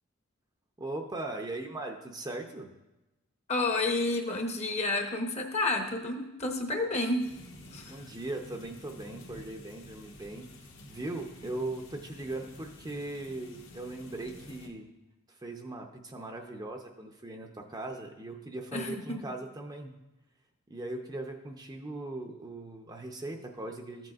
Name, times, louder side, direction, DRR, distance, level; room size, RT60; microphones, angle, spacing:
voice 1, 0.8-2.7 7.9-10.5 10.9-14.9 15.3-19.9 20.7-24.1, right 2 dB, 20° right, 3 dB, 0.5 m, -39 dB
voice 2, 3.5-7.3 7.7-8.0 18.7-19.2, left 2 dB, 30° left, 4 dB, 0.8 m, -30 dB
sound 1, 7.2-14.7, left 1 dB, 65° left, 1.2 m, -50 dB
14.0 x 7.6 x 2.4 m, 1.0 s
head